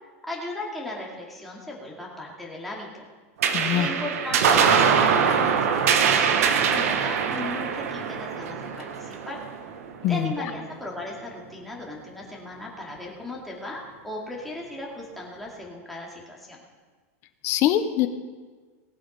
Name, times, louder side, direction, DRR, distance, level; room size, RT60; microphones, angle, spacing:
voice 1, 0.2-3.1 3.7-9.4 10.1-16.6, left 2 dB, ahead, -4 dB, 2.4 m, -37 dB
sound 1, 3.4-10.2, right 6 dB, 75° right, 1.2 m, -23 dB
voice 2, 3.5-3.9 10.0-10.3 17.4-18.1, left 12 dB, 35° left, 10 dB, 0.9 m, -23 dB
19.0 x 8.0 x 5.4 m, 1.4 s
supercardioid pair, 165°, 8 cm